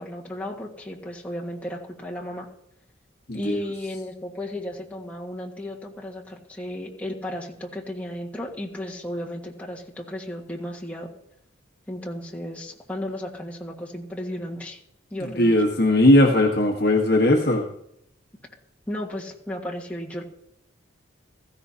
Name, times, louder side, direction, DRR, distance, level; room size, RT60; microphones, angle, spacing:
voice 1, 0.0-2.5 3.3-11.1 11.9-14.8 15.1-15.6 18.9-20.2, left 1 dB, 5° left, -3 dB, 1.6 m, -34 dB
voice 2, 15.2-17.6, left 1 dB, 50° left, 0 dB, 1.4 m, -18 dB
16.0 x 15.5 x 2.8 m, 0.75 s
head